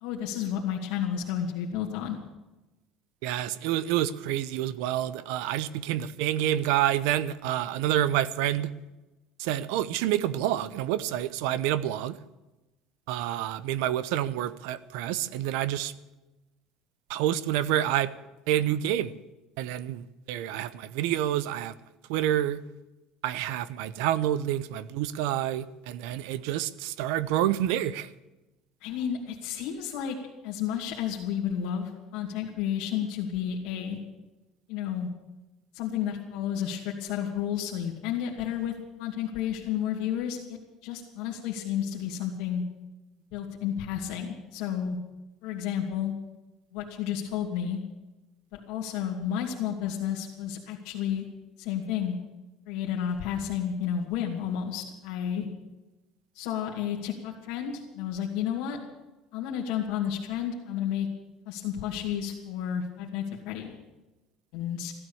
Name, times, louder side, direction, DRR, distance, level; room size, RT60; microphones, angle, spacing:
voice 1, 0.0-2.2 28.8-30.2 30.4-34.0 34.7-35.1 35.7-38.7 39.0-40.6 40.8-42.6 43.3-45.0 45.4-46.1 46.7-47.8 48.5-51.2 51.6-52.2 52.7-55.5 56.3-58.8 59.3-61.1 61.5-63.8 64.5-64.9, left 9 dB, 75° left, -3 dB, 2.4 m, -31 dB
voice 2, 3.2-8.7 9.4-12.2 13.1-15.9 17.1-18.1 18.5-19.1 19.6-21.7 22.1-22.6 23.2-28.1, right 12 dB, 80° right, 16 dB, 0.8 m, -28 dB
16.0 x 12.5 x 7.1 m, 1.0 s
cardioid pair, 165°, 0 cm